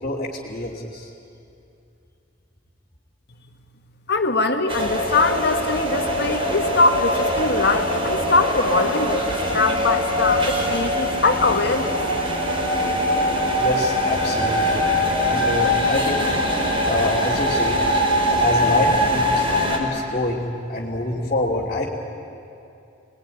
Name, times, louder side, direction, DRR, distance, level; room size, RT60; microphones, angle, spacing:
voice 1, 0.0-1.1 13.6-14.9 15.2-16.3 16.8-17.8 18.3-21.9, left 1 dB, 40° left, -6 dB, 2.9 m, -26 dB
voice 2, 4.1-12.0, left 3 dB, 55° left, 6 dB, 1.7 m, -22 dB
sound 1, 4.7-19.8, equal, 30° right, 5.1 m, -22 dB
28.5 x 21.0 x 9.9 m, 2.7 s
head